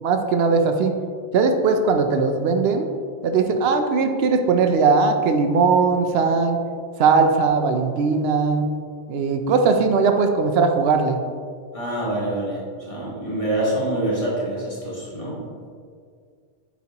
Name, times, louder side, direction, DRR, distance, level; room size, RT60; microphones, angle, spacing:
voice 1, 0.0-0.9 1.3-2.9 3.2-6.6 7.0-8.7 9.1-11.2, right 4 dB, 75° right, 6 dB, 0.8 m, -19 dB
voice 2, 11.7-15.5, right 1 dB, 35° left, -7 dB, 1.6 m, -26 dB
8.3 x 4.2 x 2.9 m, 2.1 s
omnidirectional pair, 1.1 m